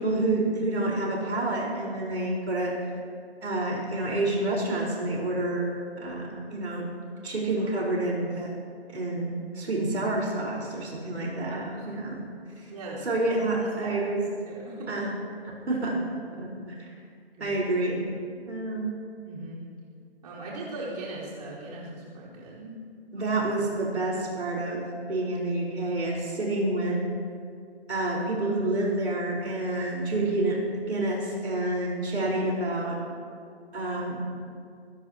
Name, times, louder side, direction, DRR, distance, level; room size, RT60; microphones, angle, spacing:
voice 1, 0.0-2.7 3.4-5.7 6.0-6.9 7.2-8.5 8.9-12.2 13.0-14.3 14.9-15.1 15.7-16.0 16.4-16.8 17.4-18.0 18.5-18.9 23.1-27.0 27.9-30.6 30.9-33.0 33.7-34.3, right 2 dB, 75° right, -3 dB, 4.9 m, -28 dB
voice 2, 11.5-11.9 12.7-13.3 13.5-14.0 14.5-15.1 17.4-17.6 19.2-19.6 20.2-22.7, right 2 dB, 40° right, -7 dB, 4.8 m, -39 dB
22.5 x 19.5 x 3.0 m, 2.3 s
hypercardioid pair, 160°, 33 cm